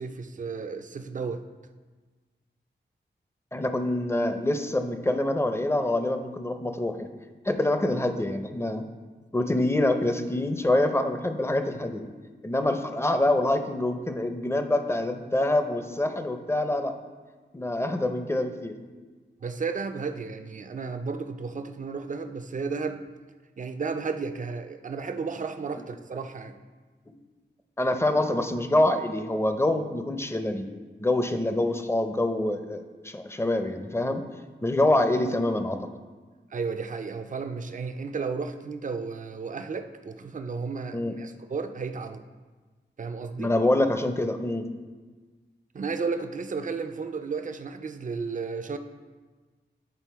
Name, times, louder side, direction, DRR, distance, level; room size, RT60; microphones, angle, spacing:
voice 1, 0.0-1.4 19.4-23.0 23.6-26.6 36.5-42.2 43.0-43.5 45.7-48.8, right 4 dB, 40° right, 8 dB, 0.5 m, -33 dB
voice 2, 3.5-7.1 7.4-8.8 9.3-12.0 12.4-16.9 17.5-18.7 27.8-30.7 31.0-34.2 34.6-35.8 40.9-41.2 43.4-44.7, left 1 dB, 15° left, 7 dB, 0.6 m, -25 dB
9.1 x 3.7 x 4.6 m, 1.4 s
wide cardioid pair, 75°, 20 cm